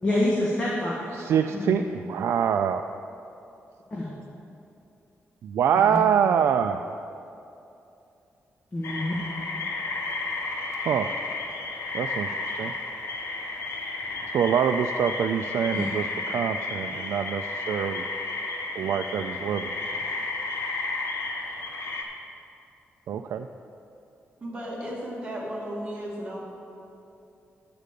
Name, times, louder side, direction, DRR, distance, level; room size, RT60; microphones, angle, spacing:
voice 1, 0.0-1.1 1.6-1.8 3.9-4.1 5.7-6.0 8.7-9.1 15.7-15.8, left 1 dB, 25° left, -6 dB, 1.6 m, -27 dB
voice 2, 1.1-2.8 5.4-7.0 10.8-11.2 11.9-12.7 14.3-18.0 18.7-19.7 23.1-23.5, right 8 dB, 85° right, 6 dB, 0.3 m, -25 dB
sound 1, 8.8-22.0, left 3 dB, 65° left, 1.2 m, -32 dB
voice 3, 24.4-26.4, equal, 25° right, -5 dB, 2.5 m, -34 dB
10.5 x 5.2 x 8.3 m, 2.7 s
wide cardioid pair, 140°, 5 cm